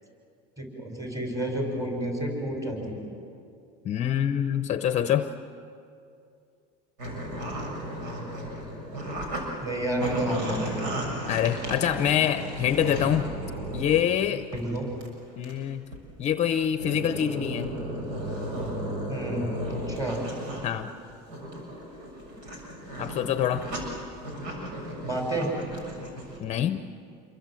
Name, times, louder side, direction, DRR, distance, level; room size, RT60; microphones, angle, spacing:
voice 1, 0.6-3.1 9.6-10.7 14.5-14.8 19.1-20.2 25.0-25.5, right 1 dB, 15° right, 1 dB, 6.3 m, -30 dB
voice 2, 3.8-5.3 11.3-13.3 13.7-14.5 15.4-15.9 16.2-17.8 20.6-20.9 23.0-23.7 26.4-26.8, left 10 dB, 30° left, 10 dB, 0.7 m, -25 dB
sound 1, 7.0-9.4 9.7-14.1 14.5-14.8 15.0-15.1 15.4-15.5 15.9-16.0 16.6-20.7 21.1-26.4, right 1 dB, 90° right, 6.8 m, -34 dB
28.0 x 23.0 x 7.7 m, 2.5 s
supercardioid pair, 145°, 21 cm